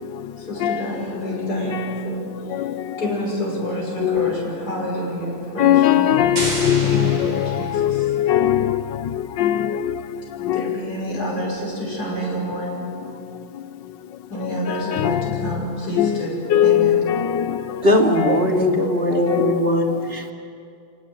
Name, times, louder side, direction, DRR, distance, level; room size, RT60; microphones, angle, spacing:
voice 1, 0.4-2.3 3.0-8.0 10.4-12.9 14.3-17.1, equal, 50° left, 6.6 m, -28 dB
voice 2, 2.5-3.1 4.0-4.3 5.6-8.8 9.1-10.0 10.4-10.7 14.4-15.5 16.0-16.2 16.5-17.6 18.2-18.3 19.3-19.6, left 11 dB, 70° left, 1.4 m, -20 dB
sound 1, 6.4-8.2, right 2 dB, 65° right, 5.0 m, -31 dB
voice 3, 17.8-20.3, left 1 dB, 30° right, 2.6 m, -19 dB
28.5 x 18.5 x 9.1 m
omnidirectional pair, 2.1 m